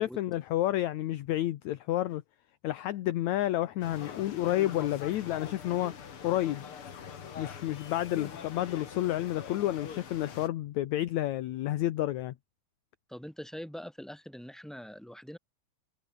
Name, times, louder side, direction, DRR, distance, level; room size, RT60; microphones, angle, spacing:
voice 1, 0.0-2.2 2.6-5.9 6.2-6.7 7.4-12.3, left 14 dB, 70° left, 2.1 m, -30 dB
sound 1, 3.8-10.5, left 7 dB, 45° left, 2.6 m, -44 dB
voice 2, 13.1-15.4, equal, ahead, 6.9 m, -43 dB
omnidirectional pair, 3.9 m